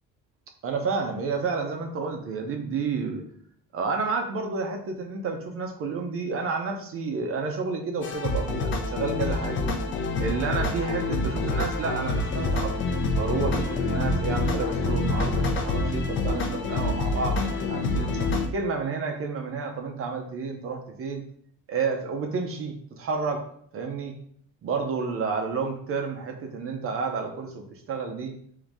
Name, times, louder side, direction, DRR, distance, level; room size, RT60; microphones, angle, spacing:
voice 1, 0.6-3.2 3.7-9.6 10.2-18.1 18.5-21.2 21.7-23.5 23.7-24.1 24.6-28.3, right 4 dB, 45° right, 4 dB, 0.6 m, -30 dB
sound 1, 8.0-18.5, left 2 dB, 40° left, 0.6 m, -27 dB
3.7 x 2.7 x 4.6 m, 0.62 s
cardioid pair, 150°, 32 cm